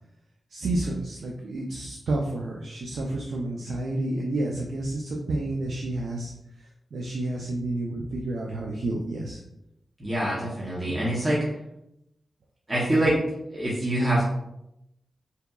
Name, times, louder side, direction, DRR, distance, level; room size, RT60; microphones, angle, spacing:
voice 1, 0.5-6.3 6.9-9.4 10.8-11.0, right 2 dB, 85° right, -1 dB, 0.3 m, -30 dB
voice 2, 10.0-11.4 12.7-13.2 13.5-14.2, right 1 dB, 25° right, -7 dB, 0.7 m, -25 dB
2.7 x 2.2 x 2.2 m, 0.85 s
wide cardioid pair, 85°, 0 cm